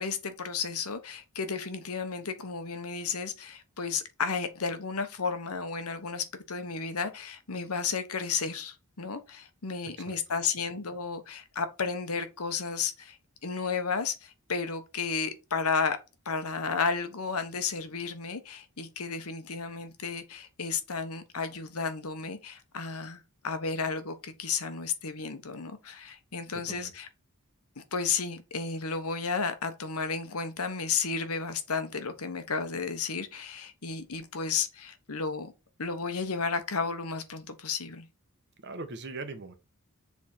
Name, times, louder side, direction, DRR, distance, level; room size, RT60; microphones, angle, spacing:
voice 1, 0.0-13.2 13.4-16.0 16.2-27.1 27.8-35.5 35.8-38.1, left 5 dB, 80° left, 1.1 m, -33 dB
voice 2, 26.5-26.9 38.6-39.5, right 3 dB, 50° right, 1.1 m, -40 dB
7.3 x 3.6 x 4.4 m
head